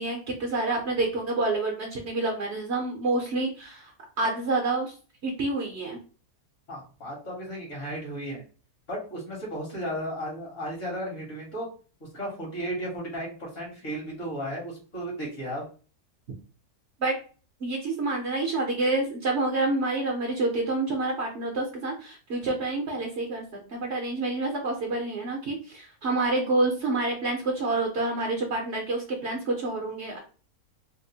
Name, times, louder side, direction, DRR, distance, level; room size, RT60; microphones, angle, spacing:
voice 1, 0.0-3.9 4.2-4.9 5.2-6.0 17.0-17.2 17.6-30.2, right 2 dB, 55° right, 1 dB, 0.9 m, -28 dB
voice 2, 6.7-8.4 8.9-11.7 12.0-15.7, equal, 55° left, -2 dB, 1.8 m, -34 dB
3.5 x 2.5 x 2.6 m, 0.38 s
omnidirectional pair, 1.5 m